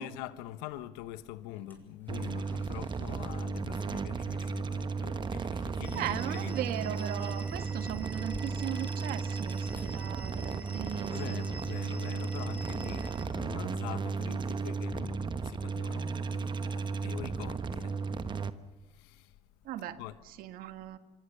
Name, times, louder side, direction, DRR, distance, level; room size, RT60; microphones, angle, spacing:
voice 1, 0.0-6.5 11.1-18.4 18.8-19.4 20.0-20.1, left 13 dB, 85° left, 1.1 m, -44 dB
sound 1, 0.7-11.8, left 2 dB, 10° left, 6.5 m, -57 dB
sound 2, 2.1-18.5, right 5 dB, 30° right, 1.1 m, -34 dB
sound 3, 5.8-13.2, right 1 dB, 10° right, 3.8 m, -49 dB
voice 2, 6.0-11.4 19.7-20.0 20.4-21.0, right 11 dB, 70° right, 1.7 m, -38 dB
27.5 x 24.5 x 6.8 m
supercardioid pair, 100°, 16 cm